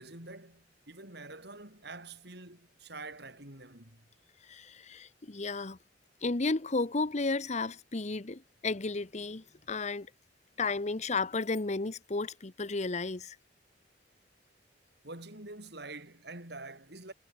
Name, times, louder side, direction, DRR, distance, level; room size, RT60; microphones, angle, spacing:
voice 1, 0.0-4.0 15.0-17.1, right 2 dB, 60° right, 6.9 m, -46 dB
voice 2, 4.5-5.8 6.2-10.1 10.6-13.4, left 3 dB, 40° left, 0.9 m, -33 dB
head